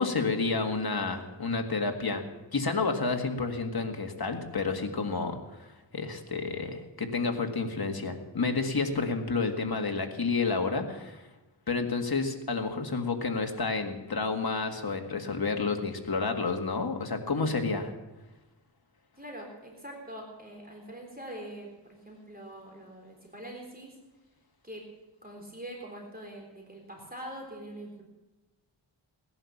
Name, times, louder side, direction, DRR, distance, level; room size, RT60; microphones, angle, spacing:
voice 1, 0.0-2.2 2.5-11.3 11.7-17.9, left 4 dB, 50° left, 4 dB, 1.9 m, -30 dB
voice 2, 17.3-17.7 19.2-23.9 24.6-24.8 25.2-28.0, right 1 dB, 20° right, 0 dB, 3.9 m, -44 dB
17.5 x 11.0 x 7.1 m, 1.1 s
wide cardioid pair, 75°, 46 cm